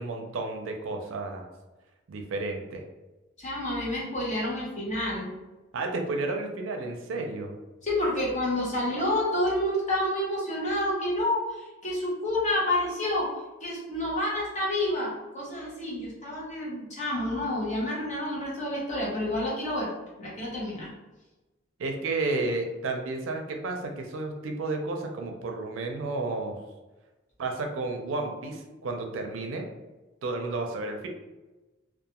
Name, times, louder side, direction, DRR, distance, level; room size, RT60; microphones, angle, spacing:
voice 1, 0.0-1.5 2.1-2.8 5.7-7.5 21.8-26.6 27.4-29.7 30.2-31.1, right 3 dB, 75° right, 3 dB, 0.4 m, -32 dB
voice 2, 3.4-5.3 7.8-13.3 13.6-19.9 20.2-20.9, left 1 dB, 35° left, -5 dB, 0.8 m, -29 dB
2.3 x 2.3 x 2.8 m, 1.1 s
head